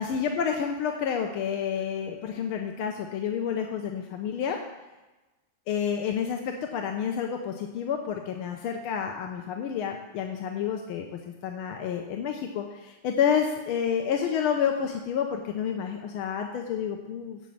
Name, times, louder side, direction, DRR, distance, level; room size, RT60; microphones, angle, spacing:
voice 1, 0.0-4.6 5.7-11.1 11.4-17.4, left 7 dB, 80° left, 3 dB, 1.7 m, -29 dB
7.5 x 7.5 x 8.5 m, 1.1 s
omnidirectional pair, 2.3 m